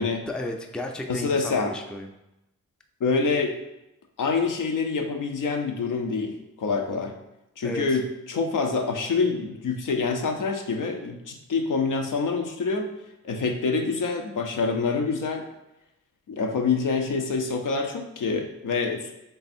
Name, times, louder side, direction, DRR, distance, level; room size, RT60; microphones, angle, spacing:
voice 1, 0.3-2.1 7.6-8.0, left 1 dB, 5° left, 3 dB, 0.4 m, -33 dB
voice 2, 1.1-1.7 3.0-3.5 4.2-7.1 7.6-12.9 13.2-15.5 16.3-19.1, left 4 dB, 80° left, 4 dB, 0.7 m, -26 dB
3.5 x 3.4 x 4.2 m, 0.90 s
wide cardioid pair, 115°, 31 cm